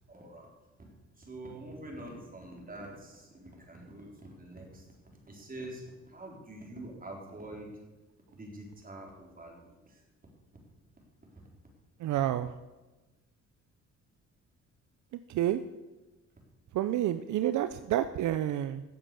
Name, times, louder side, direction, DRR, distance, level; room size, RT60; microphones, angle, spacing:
voice 1, 0.1-0.5 1.2-4.9 5.3-7.7 8.3-10.0 11.3-11.4, right 1 dB, 30° right, 0 dB, 4.3 m, -45 dB
voice 2, 12.0-12.5 15.3-15.6 16.7-18.8, right 12 dB, 75° right, 12 dB, 0.6 m, -29 dB
14.5 x 7.8 x 6.9 m, 1.1 s
cardioid pair, 90°, 30 cm